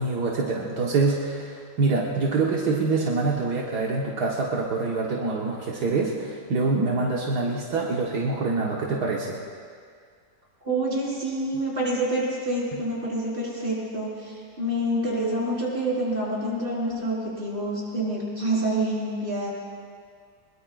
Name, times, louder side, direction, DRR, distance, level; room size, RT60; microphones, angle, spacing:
voice 1, 0.0-9.4 12.7-12.8, right 3 dB, 75° right, -3 dB, 1.8 m, -25 dB
voice 2, 10.6-19.5, right 1 dB, 30° right, -6 dB, 4.5 m, -27 dB
22.0 x 21.5 x 2.4 m, 2.1 s
omnidirectional pair, 1.7 m